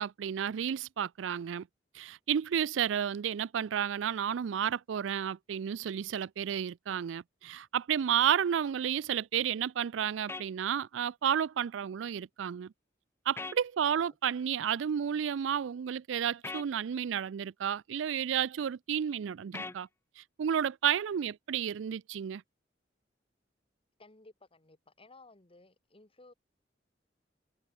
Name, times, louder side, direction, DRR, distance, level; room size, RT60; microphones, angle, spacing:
voice 1, 0.0-1.7 1.9-12.7 13.3-19.9 20.2-22.4, right 8 dB, 80° right, 0.4 m, -31 dB
sound 1, 10.3-10.5 13.4-13.6 16.4-16.7 19.5-19.8, left 3 dB, 15° left, 0.5 m, -39 dB
voice 2, 24.0-26.3, left 2 dB, 30° left, 2.2 m, -57 dB
head